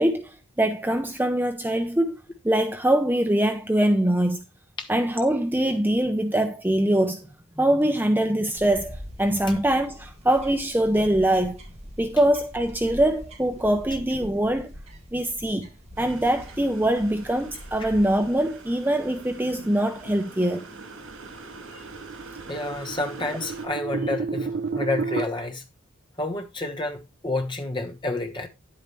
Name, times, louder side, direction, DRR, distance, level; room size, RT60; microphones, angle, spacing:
voice 1, 0.0-2.2 2.4-4.4 4.9-7.3 7.6-11.6 12.0-14.7 15.1-15.7 16.0-20.6, right 1 dB, 10° right, 0.6 m, -23 dB
sound 1, 8.5-18.3, equal, 30° right, 4.6 m, -44 dB
sound 2, 16.0-23.7, right 2 dB, 85° right, 4.8 m, -44 dB
sound 3, 20.5-25.2, right 4 dB, 50° right, 0.4 m, -32 dB
voice 2, 22.5-25.6 26.2-28.5, left 2 dB, 20° left, 1.2 m, -29 dB
10.5 x 8.4 x 3.1 m
head